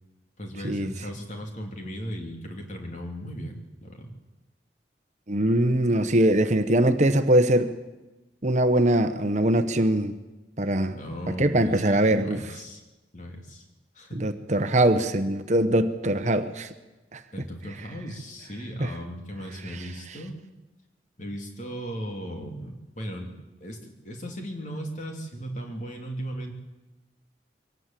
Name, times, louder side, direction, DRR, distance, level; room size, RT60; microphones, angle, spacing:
voice 1, 0.4-4.1 10.9-12.8 13.1-13.6 13.9-14.3 17.3-20.4 21.2-23.3 23.6-26.5, equal, 45° left, 2 dB, 3.0 m, -37 dB
voice 2, 5.3-7.7 8.4-10.2 10.6-11.0 11.3-12.4 14.1-16.7 17.1-17.2 18.8-18.9, right 1 dB, 40° right, 9 dB, 1.0 m, -22 dB
23.0 x 18.0 x 7.5 m, 1.1 s
head